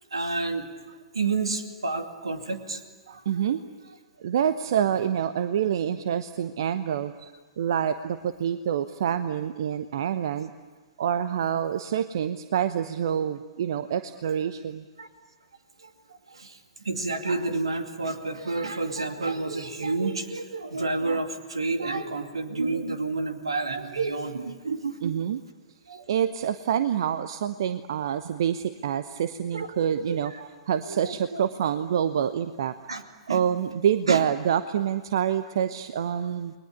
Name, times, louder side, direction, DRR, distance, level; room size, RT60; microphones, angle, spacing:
voice 1, 0.1-0.7 1.1-2.8 3.1-3.2 15.0-15.1 15.8-15.9 16.3-16.6 16.8-25.1 25.9-26.0 29.5-29.7 30.1-30.5 30.9-31.4 32.9-33.0 33.3-33.4 34.1-34.2, right 3 dB, 75° right, 7 dB, 2.4 m, -29 dB
voice 2, 3.1-3.6 4.2-10.5 11.0-14.8 25.0-25.4 26.1-30.3 30.7-32.7 33.3-36.5, right 9 dB, 55° right, 12 dB, 0.9 m, -27 dB
29.5 x 22.0 x 8.5 m, 1.3 s
figure-of-eight pair, 105°, 3 cm